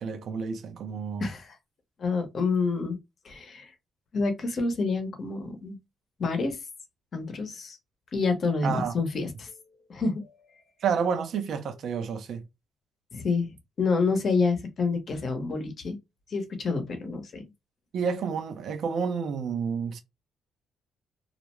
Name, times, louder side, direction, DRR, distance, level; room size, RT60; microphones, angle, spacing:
voice 1, 0.0-1.3 8.6-8.9 10.8-12.4 17.9-20.0, right 6 dB, 70° right, 0.6 m, -30 dB
voice 2, 1.2-1.6 2.0-3.0 3.2-3.7 4.1-5.8 6.2-6.6 7.1-7.8 8.1-9.5 9.9-10.3 13.1-16.0 16.3-17.4, left 4 dB, 50° left, 0.8 m, -28 dB
2.4 x 2.1 x 2.9 m
cardioid pair, 90°, 0 cm